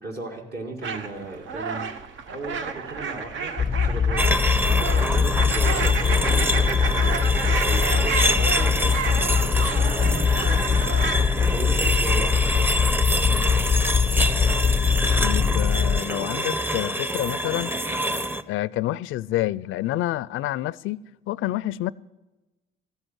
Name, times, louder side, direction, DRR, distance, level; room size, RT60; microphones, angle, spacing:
voice 1, 0.0-1.9 2.3-4.3 4.6-7.0 7.6-10.8 11.5-13.0, right 2 dB, 55° right, 2.1 m, -36 dB
sound 1, 0.8-11.3, right 5 dB, 75° right, 1.1 m, -31 dB
sound 2, 3.6-16.0, left 6 dB, 25° left, 0.4 m, -22 dB
sound 3, 4.2-18.4, right 1 dB, 10° right, 0.7 m, -26 dB
voice 2, 15.2-17.7 18.5-21.0 21.3-21.9, left 15 dB, 85° left, 0.4 m, -28 dB
14.0 x 8.0 x 9.0 m
cardioid pair, 90°, 20 cm